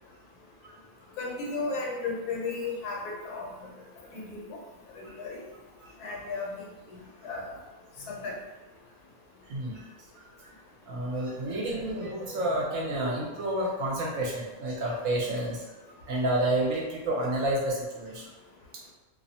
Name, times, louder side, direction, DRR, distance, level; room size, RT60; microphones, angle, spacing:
voice 1, 1.2-3.5 4.1-4.6 5.0-5.4 6.0-6.5 6.9-7.6 8.1-8.4 15.2-15.5, left 3 dB, 85° left, -1 dB, 1.2 m, -35 dB
voice 2, 9.5-9.9 10.1-10.2 10.9-15.6 16.1-18.3, right 1 dB, 70° right, -3 dB, 0.9 m, -30 dB
2.6 x 2.0 x 2.7 m, 1.1 s
omnidirectional pair, 1.6 m